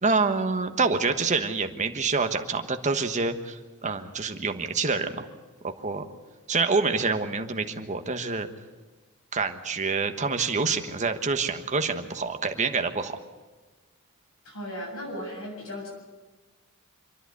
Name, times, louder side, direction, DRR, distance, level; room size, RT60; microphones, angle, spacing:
voice 1, 0.0-5.3 5.6-6.1 6.5-8.5 9.3-13.2, right 4 dB, 35° right, 7 dB, 1.3 m, -27 dB
voice 2, 14.4-15.9, equal, 65° left, 0 dB, 7.7 m, -36 dB
26.0 x 11.0 x 9.5 m, 1.3 s
head